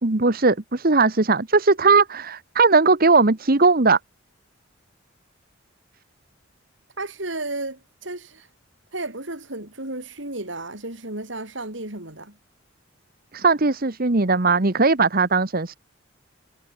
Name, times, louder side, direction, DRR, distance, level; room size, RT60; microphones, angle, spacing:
voice 1, 0.0-4.0 13.3-15.8, right 3 dB, 45° right, 1.3 m, -18 dB
voice 2, 7.0-8.5 8.9-12.4, right 2 dB, 65° right, 6.0 m, -33 dB
head